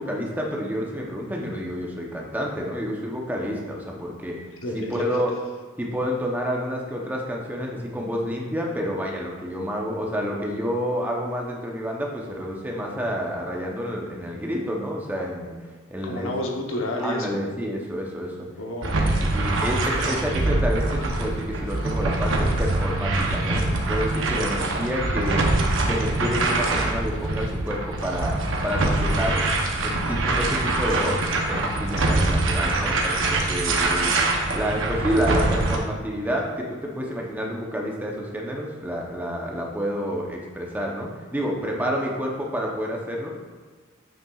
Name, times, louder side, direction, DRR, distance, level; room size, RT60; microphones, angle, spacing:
voice 1, 0.0-4.4 4.7-5.3 5.8-15.5 15.9-16.3 17.0-18.5 18.9-19.1 19.3-25.5 25.8-29.5 29.8-34.2 34.5-43.3, equal, 10° right, -1 dB, 0.7 m, -29 dB
voice 2, 4.6-5.0 16.0-17.4 18.6-19.0 32.0-32.2, left 1 dB, 80° left, 1 dB, 0.9 m, -30 dB
sound 1, 18.8-35.8, right 2 dB, 70° right, 0.8 m, -24 dB
7.6 x 5.8 x 2.4 m, 1.4 s
head